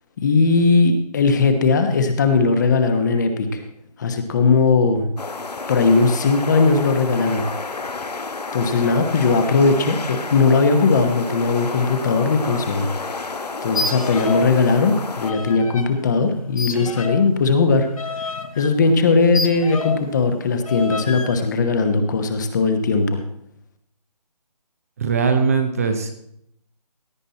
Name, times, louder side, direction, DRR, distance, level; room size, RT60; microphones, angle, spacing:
voice 1, 0.2-3.6 4.0-5.1 5.7-7.4 8.5-12.9 13.6-17.9 18.5-23.2, left 4 dB, 25° left, 7 dB, 1.2 m, -18 dB
sound 1, 5.2-15.3, left 3 dB, 75° left, 1.3 m, -31 dB
sound 2, 13.7-14.6 14.8-15.9 16.6-20.1 20.7-21.4, left 4 dB, 55° left, 1.5 m, -29 dB
voice 2, 25.0-26.1, right 5 dB, 20° right, 6 dB, 0.8 m, -20 dB
16.5 x 9.2 x 4.2 m, 0.73 s
figure-of-eight pair, 160°, 21 cm